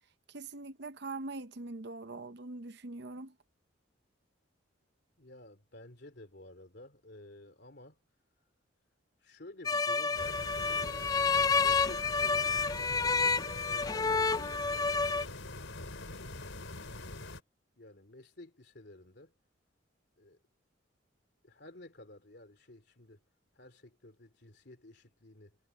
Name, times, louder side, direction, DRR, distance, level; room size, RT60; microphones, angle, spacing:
voice 1, 0.3-3.3, right 3 dB, 55° right, 0.8 m, -42 dB
voice 2, 5.2-8.0 9.2-13.4 13.7-15.2 17.8-19.3 20.2-20.4 21.4-23.2 23.5-25.6, left 1 dB, 55° left, 3.0 m, -53 dB
sound 1, 9.6-15.2, left 4 dB, 20° left, 0.4 m, -29 dB
sound 2, 10.1-17.4, left 2 dB, 75° left, 4.3 m, -44 dB
head